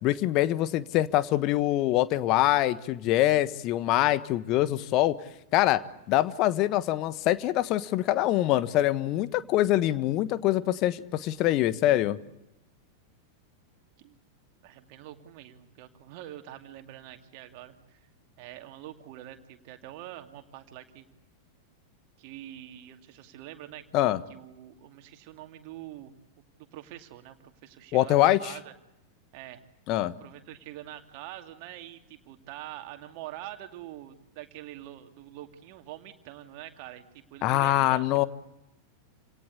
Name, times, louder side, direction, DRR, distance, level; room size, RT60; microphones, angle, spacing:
voice 1, 0.0-5.2 5.5-5.8 6.1-12.2 23.9-24.2 27.9-28.5 29.9-30.1 37.4-38.3, left 14 dB, 40° left, 15 dB, 1.3 m, -24 dB
voice 2, 14.6-18.1 18.4-21.1 22.2-23.8 24.3-26.1 26.6-28.7 29.3-29.6 30.2-38.3, right 13 dB, 45° right, 6 dB, 2.5 m, -45 dB
28.5 x 18.0 x 8.3 m, 0.93 s
figure-of-eight pair, 90°, 0 cm